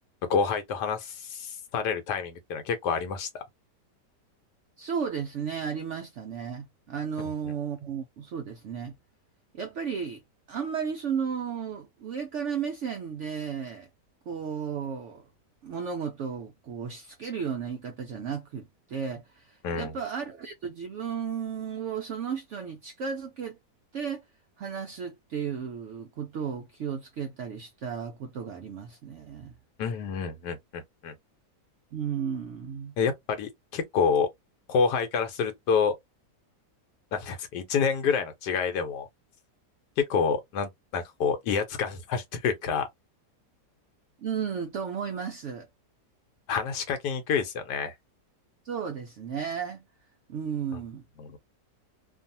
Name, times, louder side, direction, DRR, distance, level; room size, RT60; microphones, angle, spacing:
voice 1, 0.3-3.4 19.6-20.0 29.8-31.1 33.0-34.3 34.7-36.0 37.1-39.1 40.0-42.9 46.5-47.9 51.2-51.4, left 6 dB, 80° left, 1.2 m, -28 dB
voice 2, 4.8-8.9 9.5-10.2 10.5-13.9 14.3-15.2 15.6-23.6 23.9-24.2 24.6-29.5 31.9-32.9 44.2-45.7 48.6-49.8 50.3-51.0, right 7 dB, 80° right, 0.6 m, -34 dB
2.6 x 2.4 x 2.6 m
omnidirectional pair, 1.8 m